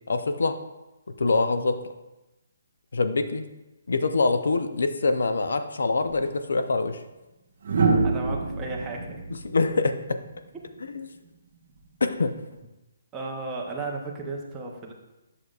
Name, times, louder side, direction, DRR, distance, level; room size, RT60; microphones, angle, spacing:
voice 1, 0.1-0.6 1.1-1.8 2.9-3.5 3.9-7.0 9.5-10.2 10.9-11.1 12.0-12.4, left 3 dB, 80° left, 9 dB, 0.6 m, -24 dB
sound 1, 6.1-6.3 7.6-10.7 12.3-12.6, right 4 dB, 60° right, 0.9 m, -26 dB
voice 2, 8.0-9.3 13.1-14.9, right 3 dB, 10° right, -2 dB, 0.7 m, -34 dB
8.2 x 6.3 x 2.4 m, 1.0 s
hypercardioid pair, 165°, 0 cm